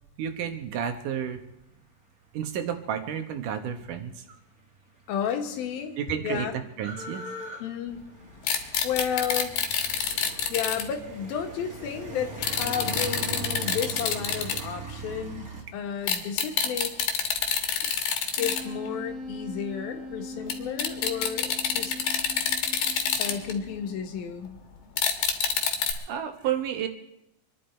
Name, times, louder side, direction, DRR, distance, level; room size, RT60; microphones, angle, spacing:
voice 1, 0.2-1.4 2.3-4.2 6.0-6.5 6.8-7.2 9.9-10.6 26.1-26.9, right 9 dB, 70° right, 7 dB, 2.5 m, -31 dB
sound 1, 5.0-5.1 5.3-15.6, right 4 dB, 30° right, 2.2 m, -40 dB
voice 2, 5.1-6.0 6.2-6.6 7.6-8.0 8.8-9.5 10.5-16.9 18.4-21.9 23.2-24.6, left 8 dB, 85° left, 5 dB, 3.3 m, -32 dB
sound 2, 8.4-10.8 12.4-14.6 16.1-18.6 18.9-19.0 20.5-20.6 20.8-23.8 25.0-25.9, left 7 dB, 70° left, 3.1 m, -27 dB
Wind instrument woodwind instrument, 18.4-24.0, left 2 dB, 50° right, 2.3 m, -41 dB
26.0 x 11.0 x 4.4 m, 0.83 s
omnidirectional pair, 4.1 m